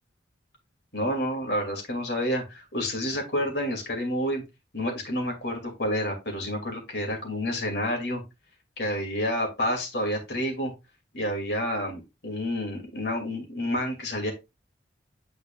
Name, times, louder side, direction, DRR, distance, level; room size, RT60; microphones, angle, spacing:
voice 1, 0.9-4.4 4.7-8.2 8.8-10.7 11.1-14.3, equal, 65° left, 2 dB, 2.6 m, -29 dB
9.0 x 4.6 x 2.5 m, 0.24 s
head